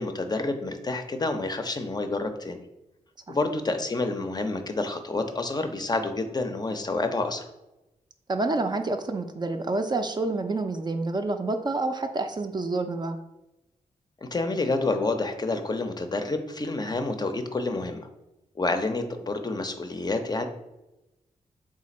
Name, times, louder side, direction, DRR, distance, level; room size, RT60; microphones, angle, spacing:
voice 1, 0.0-2.6 3.3-7.5 14.2-18.1 18.6-20.5, left 2 dB, 30° left, 6 dB, 0.5 m, -28 dB
voice 2, 8.3-13.2, right 2 dB, 30° right, 6 dB, 0.4 m, -28 dB
3.6 x 2.5 x 4.1 m, 0.95 s
cardioid pair, 55°, 14 cm